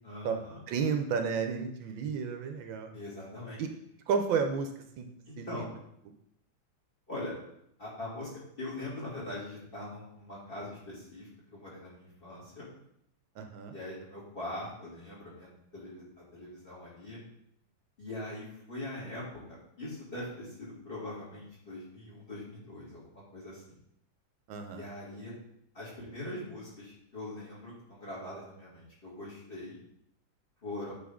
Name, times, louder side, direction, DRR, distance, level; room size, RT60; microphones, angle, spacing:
voice 1, 0.0-0.6 2.9-3.6 5.3-5.7 7.1-7.3 7.8-12.7 13.7-16.0 16.3-17.2 18.0-23.6 24.7-25.3 25.7-29.8 30.6-30.9, left 1 dB, 25° left, -7 dB, 2.7 m, -42 dB
voice 2, 0.7-2.9 3.6-3.7 4.1-4.7 5.0-5.1 5.4-5.7 13.4-13.8 24.5-24.8, right 6 dB, 80° right, 6 dB, 1.4 m, -31 dB
8.7 x 3.8 x 3.6 m, 0.74 s
omnidirectional pair, 2.1 m